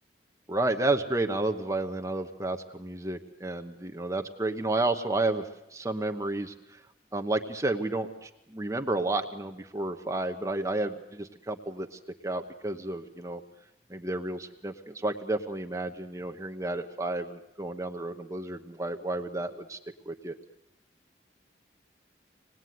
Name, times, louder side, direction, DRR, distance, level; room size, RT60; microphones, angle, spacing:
voice 1, 0.5-6.8 7.1-13.4 13.9-19.8 20.1-20.3, right 2 dB, 15° right, 5 dB, 1.0 m, -31 dB
26.0 x 19.5 x 9.4 m, 0.89 s
head